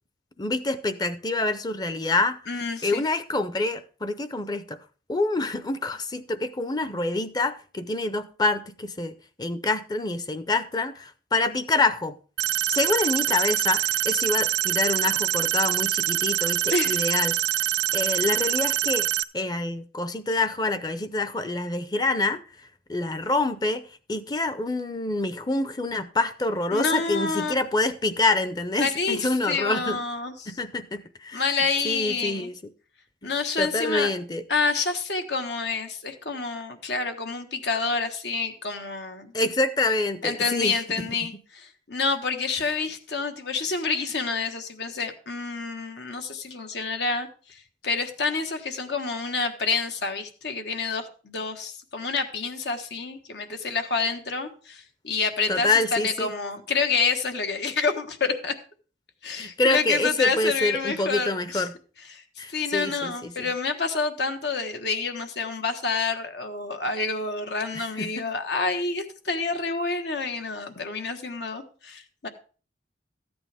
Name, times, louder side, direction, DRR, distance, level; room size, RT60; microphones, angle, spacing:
voice 1, 0.4-2.4 2.8-4.8 5.1-12.1 12.7-17.4 17.9-19.1 19.3-22.4 22.9-23.8 24.1-30.0 30.5-31.4 31.8-32.6 33.2-33.3 33.6-34.4 39.3-41.1 55.5-56.3 59.4-61.7 62.4-63.5 67.7-68.1, left 2 dB, 25° left, 12 dB, 0.7 m, -26 dB
voice 2, 2.5-3.0 16.7-17.1 26.7-27.5 28.8-30.5 31.3-32.5 33.2-34.1 34.5-39.3 40.2-58.5 59.2-61.7 62.1-62.2 62.5-72.3, left 4 dB, 75° left, 6 dB, 1.4 m, -28 dB
sound 1, 12.4-19.2, right 13 dB, 75° right, 0.4 m, -25 dB
13.5 x 8.7 x 3.5 m, 0.38 s
head